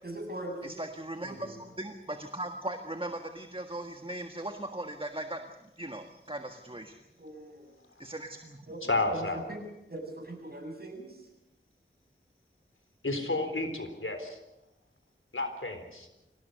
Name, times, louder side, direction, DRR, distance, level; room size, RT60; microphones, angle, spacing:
voice 1, 0.0-0.7 1.2-1.6 7.2-7.7 8.7-8.8 9.1-9.6 9.9-11.3, right 1 dB, 50° right, 2 dB, 7.8 m, -41 dB
voice 2, 0.6-5.4 5.8-7.0 8.0-8.6, right 1 dB, 25° right, 5 dB, 1.6 m, -38 dB
voice 3, 8.8-9.4 13.0-14.4 15.3-16.1, left 2 dB, 80° left, 7 dB, 3.9 m, -31 dB
25.5 x 18.0 x 6.8 m, 0.93 s
wide cardioid pair, 45°, 21 cm